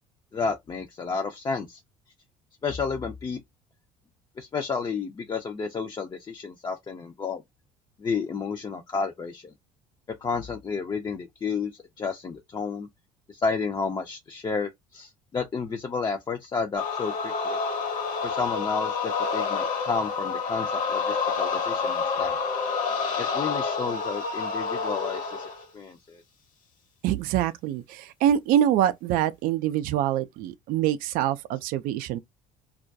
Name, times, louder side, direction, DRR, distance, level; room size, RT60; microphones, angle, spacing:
voice 1, 0.3-1.8 2.6-3.4 4.4-7.4 8.0-9.5 10.2-11.7 12.0-12.9 13.3-17.6 18.2-22.4 23.2-25.5 25.7-26.2, left 5 dB, 25° left, 0.5 m, -31 dB
sound 1, 16.8-25.6, left 5 dB, 45° left, 0.8 m, -28 dB
voice 2, 27.0-32.2, right 11 dB, 55° right, 0.4 m, -25 dB
2.3 x 2.1 x 2.6 m
hypercardioid pair, 60°, 18 cm